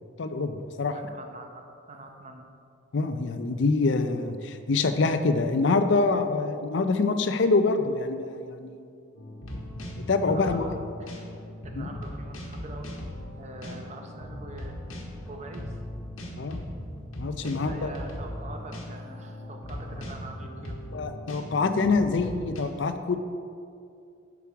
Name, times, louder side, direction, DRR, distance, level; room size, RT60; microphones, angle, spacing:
voice 1, 0.2-0.9 2.9-8.8 10.0-10.6 11.8-11.9 16.4-16.7 17.1-17.9 20.9-23.2, left 3 dB, 60° left, 9 dB, 0.5 m, -25 dB
voice 2, 0.8-2.5 10.2-11.3 11.6-12.9 13.4-15.8 17.4-20.8, right 2 dB, 35° right, 3 dB, 0.7 m, -44 dB
sound 1, 9.1-22.6, left 1 dB, 75° left, 1.2 m, -39 dB
7.0 x 6.1 x 4.7 m, 2.4 s
head